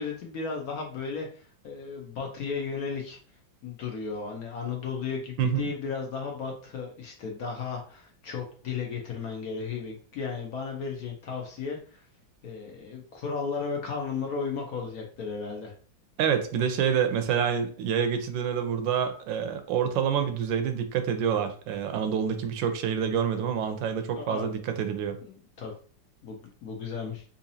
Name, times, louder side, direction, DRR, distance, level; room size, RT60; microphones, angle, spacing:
voice 1, 0.0-3.2 3.6-12.1 12.4-15.7 24.2-24.5 25.2-25.7 26.2-27.2, left 5 dB, 65° left, 1 dB, 1.0 m, -34 dB
voice 2, 16.2-25.2, right 8 dB, 85° right, 8 dB, 1.3 m, -27 dB
3.9 x 2.8 x 2.6 m, 0.43 s
omnidirectional pair, 2.1 m